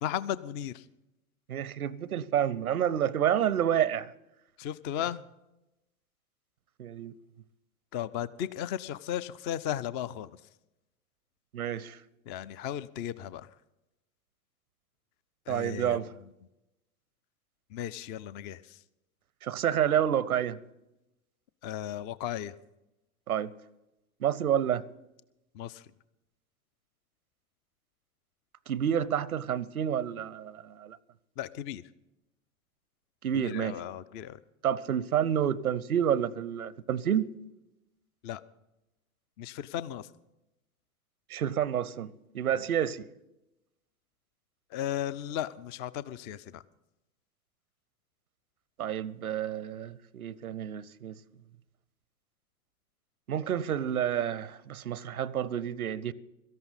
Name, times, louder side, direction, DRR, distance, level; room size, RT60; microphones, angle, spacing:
voice 1, 0.0-0.9 4.6-5.2 7.9-10.3 12.3-13.5 15.5-16.1 17.7-18.8 21.6-22.6 25.5-25.9 31.4-31.8 33.3-34.4 38.2-38.4 39.4-40.1 42.5-42.6 44.7-46.6, left 10 dB, 25° left, 0.4 m, -35 dB
voice 2, 1.5-4.1 6.8-7.1 11.5-12.0 15.5-16.1 19.4-20.6 23.3-23.5 24.2-24.8 28.7-31.0 33.2-33.8 34.6-37.3 41.3-43.1 48.8-51.2 53.3-56.1, right 9 dB, 85° right, 0.7 m, -29 dB
17.0 x 13.5 x 4.0 m
figure-of-eight pair, 90°, 42 cm